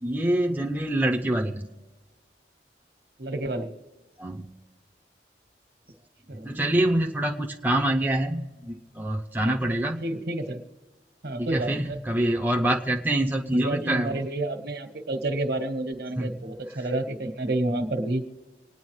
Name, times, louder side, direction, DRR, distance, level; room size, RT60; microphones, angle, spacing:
voice 1, 0.0-1.7 4.2-4.5 6.3-10.1 11.4-14.2 16.2-16.3 16.8-16.9, right 1 dB, 10° right, 1 dB, 0.6 m, -26 dB
voice 2, 3.2-3.7 6.3-6.5 10.0-10.6 11.2-12.0 13.5-18.2, right 2 dB, 65° right, 7 dB, 1.4 m, -29 dB
26.0 x 9.8 x 3.2 m, 1.3 s
head